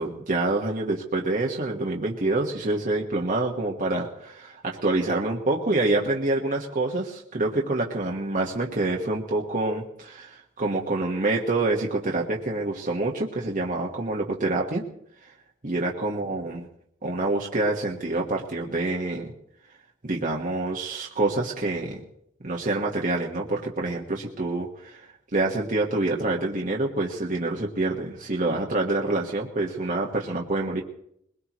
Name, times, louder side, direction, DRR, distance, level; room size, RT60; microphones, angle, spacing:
voice 1, 0.0-14.8 15.6-16.7 17.0-19.3 20.0-22.0 22.4-30.8, right 2 dB, 40° right, -1 dB, 1.5 m, -27 dB
21.5 x 21.0 x 3.1 m, 0.74 s
head